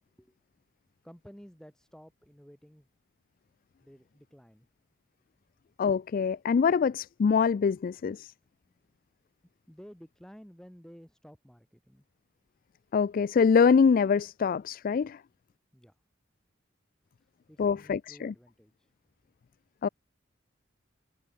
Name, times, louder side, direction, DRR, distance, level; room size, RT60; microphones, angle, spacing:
voice 1, 1.0-2.9 3.8-4.7 8.7-8.9 9.7-12.0 15.7-16.0 17.2-18.9, equal, 5° left, 6.1 m, -53 dB
voice 2, 5.8-8.3 12.9-15.2 17.6-18.3 19.8-19.9, left 6 dB, 50° left, 0.3 m, -24 dB
head